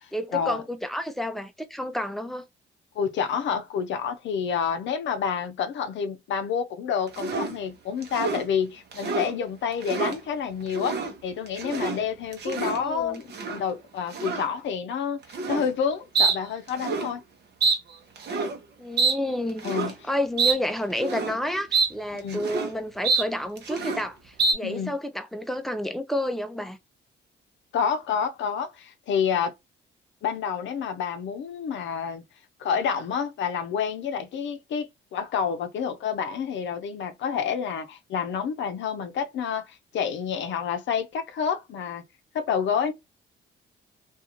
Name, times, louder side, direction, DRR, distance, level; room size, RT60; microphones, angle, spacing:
voice 1, 0.1-2.5 12.8-13.2 18.8-19.7 20.0-26.8, left 1 dB, ahead, 0.4 m, -30 dB
voice 2, 2.9-17.2 19.6-19.9 22.1-22.4 24.6-24.9 27.7-29.5 30.2-32.2 32.6-42.0 42.3-42.9, left 7 dB, 70° left, 0.6 m, -29 dB
sound 1, 7.1-7.5 8.0-8.4 8.9-9.3 9.7-10.2 10.7-11.1 11.5-12.0 12.3-12.8 13.3-13.6 14.1-14.5 15.3-15.7 16.1-16.4 16.7-17.1 17.6-17.8 18.2-18.6 19.0-19.2 19.6-19.9 20.4-20.6 20.9-21.4 21.7-21.9 22.2-22.7 23.0-23.3 23.6-24.0 24.4-24.5, right 4 dB, 55° right, 0.8 m, -26 dB
2.4 x 2.4 x 2.8 m
cardioid pair, 90°, 20 cm